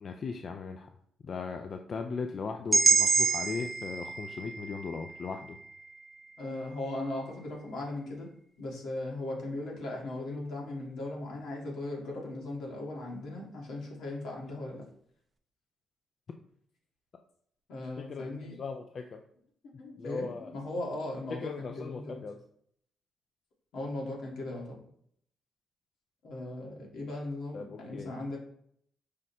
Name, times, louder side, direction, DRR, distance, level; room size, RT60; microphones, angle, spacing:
voice 1, 0.0-0.9 1.2-5.6 18.0-18.3 18.6-19.2 20.0-20.5 21.3-22.4 27.5-28.1, left 4 dB, 50° left, 5 dB, 0.3 m, -38 dB
sound 1, 2.7-6.7, right 4 dB, 30° right, 0.4 m, -28 dB
voice 2, 6.4-8.3 8.6-14.8 17.7-18.6 19.8-22.2 23.7-24.8 26.2-28.4, left 2 dB, 80° left, -1 dB, 1.3 m, -38 dB
4.9 x 2.1 x 4.1 m, 0.66 s
cardioid pair, 90°, 0 cm